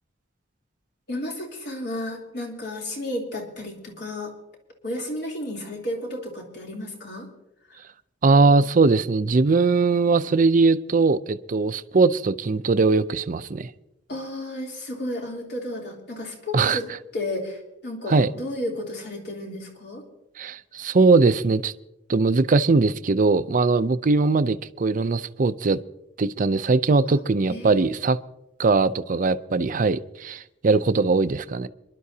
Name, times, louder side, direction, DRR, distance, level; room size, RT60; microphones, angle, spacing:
voice 1, 1.1-4.3 4.8-7.3 7.7-7.8 14.1-16.9 17.1-20.0 27.1-27.2 27.5-27.8, left 1 dB, 65° left, 0 dB, 3.2 m, -32 dB
voice 2, 8.2-13.7 16.5-16.8 18.1-18.3 20.4-21.7 22.1-25.8 26.2-28.2 28.6-31.7, right 3 dB, 45° right, 11 dB, 0.5 m, -20 dB
27.0 x 11.5 x 2.8 m, 0.88 s
head